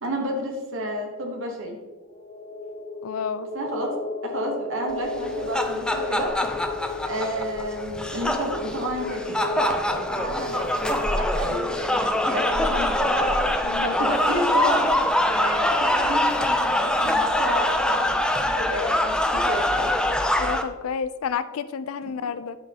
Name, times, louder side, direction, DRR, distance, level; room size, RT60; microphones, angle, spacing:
voice 1, 0.0-1.8 3.5-3.9 4.2-6.3 7.1-13.3 13.8-19.9, right 1 dB, 65° right, 1 dB, 1.1 m, -30 dB
sound 1, 2.0-16.4, left 3 dB, 35° left, 1.1 m, -35 dB
voice 2, 3.0-3.5 13.6-14.0 20.4-22.6, left 6 dB, 80° left, 14 dB, 0.4 m, -30 dB
sound 2, 5.2-20.6, left 1 dB, 5° left, 0.4 m, -24 dB
10.0 x 5.4 x 2.8 m, 1.3 s
head